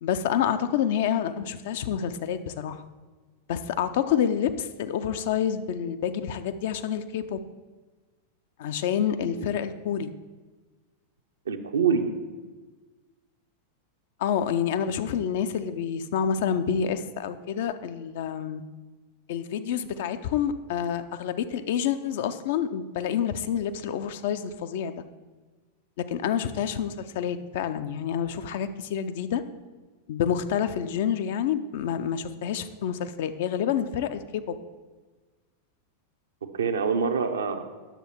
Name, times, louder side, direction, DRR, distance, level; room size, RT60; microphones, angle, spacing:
voice 1, 0.0-2.8 3.5-7.4 8.6-10.1 14.2-18.6 19.3-24.9 26.0-29.4 30.1-34.6, left 8 dB, 55° left, 10 dB, 0.5 m, -28 dB
voice 2, 11.5-12.1 36.5-37.7, right 6 dB, 70° right, 6 dB, 0.7 m, -25 dB
9.2 x 6.9 x 4.4 m, 1.3 s
figure-of-eight pair, 90°, 0 cm